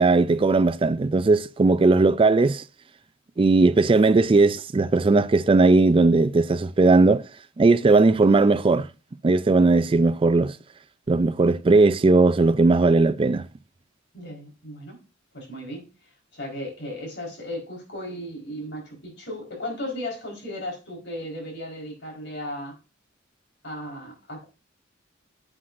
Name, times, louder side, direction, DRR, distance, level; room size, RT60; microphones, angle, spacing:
voice 1, 0.0-2.6 3.4-7.2 7.6-8.9 9.2-10.6 11.1-13.4, right 3 dB, 30° right, 0.4 m, -18 dB
voice 2, 14.1-15.0 15.3-15.8 16.3-22.7 23.6-24.4, left 1 dB, 65° left, 4.2 m, -35 dB
9.7 x 7.8 x 2.5 m
head